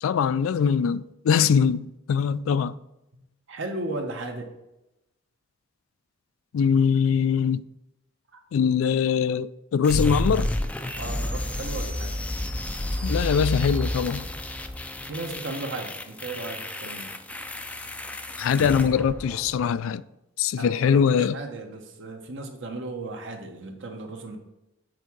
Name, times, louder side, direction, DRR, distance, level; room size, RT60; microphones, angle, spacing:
voice 1, 0.0-2.8 6.5-7.6 8.5-10.5 13.0-14.3 18.4-20.0 20.4-21.4, left 7 dB, 80° left, 0.3 m, -22 dB
voice 2, 3.1-4.5 8.3-8.4 11.0-12.2 15.1-17.1 20.6-24.4, right 2 dB, 65° right, 1.1 m, -36 dB
sound 1, 9.8-19.8, left 1 dB, 5° left, 0.4 m, -31 dB
7.8 x 3.6 x 4.6 m
head